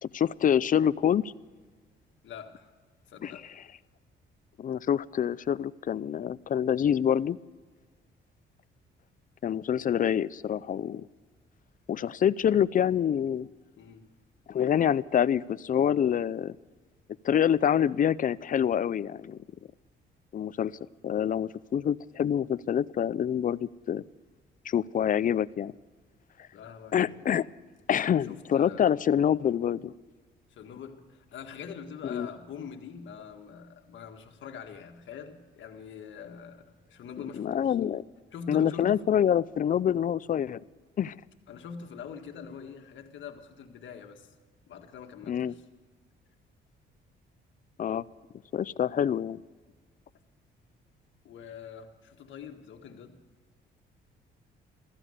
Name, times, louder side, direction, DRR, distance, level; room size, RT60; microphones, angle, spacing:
voice 1, 0.0-1.3 3.2-3.4 4.6-7.4 9.4-11.1 11.9-13.5 14.5-16.6 17.2-19.4 20.3-20.7 21.0-24.0 24.6-25.7 26.9-27.4 27.9-29.9 32.1-32.3 37.4-38.0 38.5-40.6 41.0-41.2 45.3-45.5 47.8-48.0 48.5-49.4, left 9 dB, 45° left, 19 dB, 0.5 m, -26 dB
voice 2, 2.2-2.7 3.1-3.5 13.8-14.1 26.5-27.3 28.2-28.9 30.5-37.8 38.3-39.0 41.5-44.3 44.7-45.6 51.2-53.2, left 6 dB, 70° left, 5 dB, 1.8 m, -44 dB
15.5 x 14.5 x 6.6 m, 1.4 s
cardioid pair, 90°, 20 cm